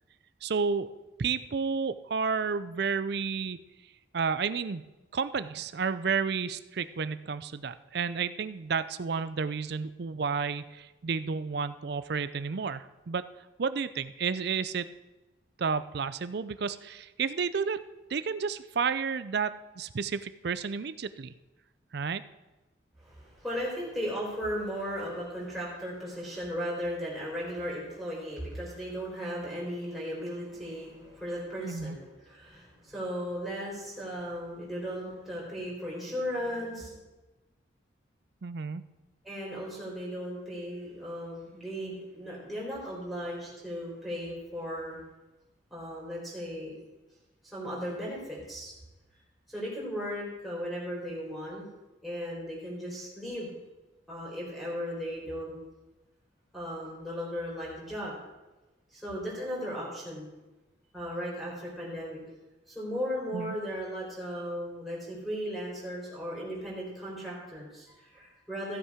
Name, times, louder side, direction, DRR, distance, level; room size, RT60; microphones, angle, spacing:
voice 1, 0.4-0.9 1.2-3.6 4.1-4.8 5.1-13.2 13.6-14.9 15.6-17.8 18.1-21.3 21.9-22.2 31.6-32.0 38.4-38.9 63.3-63.5, right 5 dB, 55° right, 14 dB, 0.4 m, -31 dB
voice 2, 23.0-37.0 39.2-45.0 45.7-46.7 47.5-48.7 49.5-51.6 52.0-53.5 54.1-55.5 56.5-58.2 58.9-60.3 60.9-62.2 62.7-68.8, equal, ahead, -5 dB, 4.3 m, -36 dB
15.5 x 7.4 x 5.0 m, 1.1 s
head